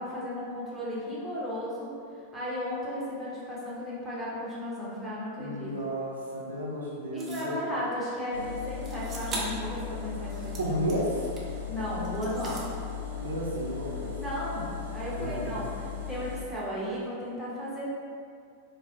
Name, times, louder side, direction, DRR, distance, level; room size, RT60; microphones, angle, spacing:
voice 1, 0.0-1.9 2.3-5.9 7.1-10.7 11.7-12.6 14.2-15.7 16.1-17.9, left 1 dB, 5° right, -9 dB, 0.9 m, -35 dB
voice 2, 5.4-7.8 10.6-11.3 13.2-14.2 15.2-15.6, equal, 75° right, -5 dB, 0.5 m, -33 dB
sound 1, 7.2-7.6 8.8-9.7 10.1-11.6 12.0-12.7, right 2 dB, 25° right, 0.5 m, -40 dB
sound 2, 8.3-16.4, left 7 dB, 85° left, 0.5 m, -37 dB
4.0 x 2.1 x 2.5 m, 2.3 s
figure-of-eight pair, 90°, 0 cm